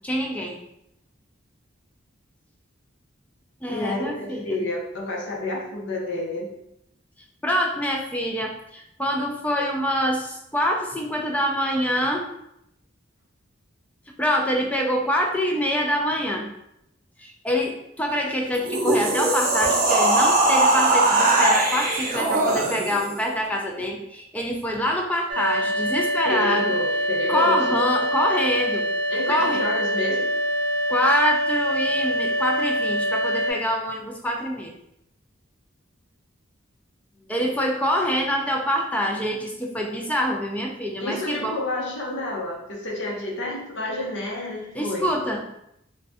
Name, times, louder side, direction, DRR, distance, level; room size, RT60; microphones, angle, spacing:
voice 1, 0.0-0.6 3.6-4.6 7.4-12.3 14.2-16.5 17.2-26.7 27.3-28.9 29.3-29.6 30.9-34.7 37.3-41.6 44.7-45.4, equal, 5° left, 1 dB, 0.3 m, -25 dB
voice 2, 3.7-6.5 26.3-27.8 29.1-30.3 37.4-37.5 41.0-45.1, left 2 dB, 65° left, -1 dB, 0.7 m, -29 dB
sound 1, 18.5-23.1, right 2 dB, 45° right, 0.6 m, -20 dB
sound 2, 25.3-33.5, equal, 80° right, 0.6 m, -25 dB
2.5 x 2.2 x 3.4 m, 0.80 s
head